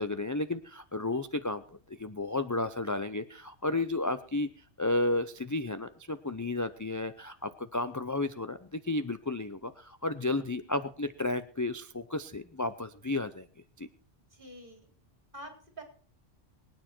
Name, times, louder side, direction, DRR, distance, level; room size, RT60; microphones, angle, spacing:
voice 1, 0.0-1.6 1.9-4.5 4.8-13.5 13.8-13.9, left 2 dB, 20° left, 10 dB, 0.5 m, -32 dB
voice 2, 14.3-14.9 15.3-15.8, right 1 dB, 45° right, 3 dB, 4.2 m, -46 dB
23.5 x 9.4 x 4.5 m, 0.43 s
omnidirectional pair, 1.2 m